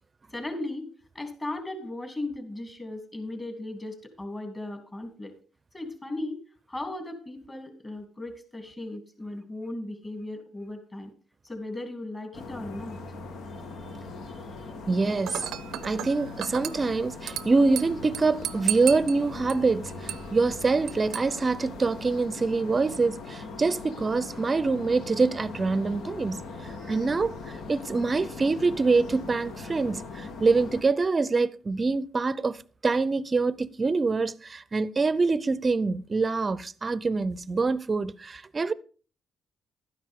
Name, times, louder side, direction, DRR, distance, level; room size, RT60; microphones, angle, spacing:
voice 1, 0.3-0.9 1.1-5.3 5.7-6.4 6.7-11.1 11.4-13.0, left 2 dB, 25° left, 3.1 m, -37 dB
sound 1, 12.3-30.8, left 3 dB, 75° left, 1.5 m, -40 dB
voice 2, 14.9-15.4 15.8-27.4 27.7-32.6 32.8-38.7, right 3 dB, 30° right, 0.6 m, -25 dB
Dishes pots and pans / Glass, 15.2-22.2, right 12 dB, 85° right, 0.6 m, -37 dB
12.5 x 9.9 x 3.7 m
cardioid pair, 90°, 0 cm